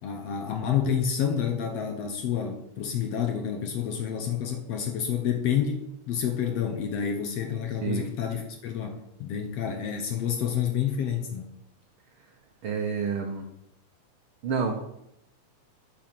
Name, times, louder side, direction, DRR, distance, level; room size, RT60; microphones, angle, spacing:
voice 1, 0.0-11.6, left 8 dB, 70° left, 4 dB, 1.6 m, -29 dB
voice 2, 12.6-13.5 14.4-14.8, right 5 dB, 80° right, 3 dB, 1.1 m, -29 dB
8.7 x 5.9 x 6.1 m, 0.81 s
omnidirectional pair, 3.6 m